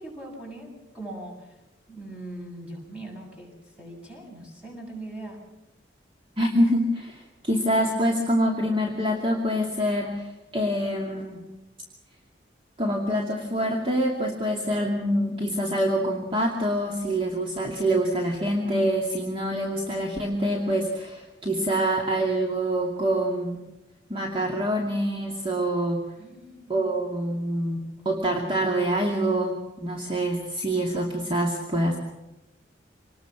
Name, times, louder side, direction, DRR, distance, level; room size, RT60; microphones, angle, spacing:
voice 1, 0.0-1.6 1.9-5.4 26.2-27.0 28.0-28.1, right 1 dB, 5° right, -1 dB, 7.7 m, -41 dB
voice 2, 6.4-11.4 12.8-23.6 24.1-26.0 26.7-32.0, right 1 dB, 30° right, 0 dB, 2.6 m, -26 dB
26.5 x 20.0 x 6.2 m, 0.98 s
head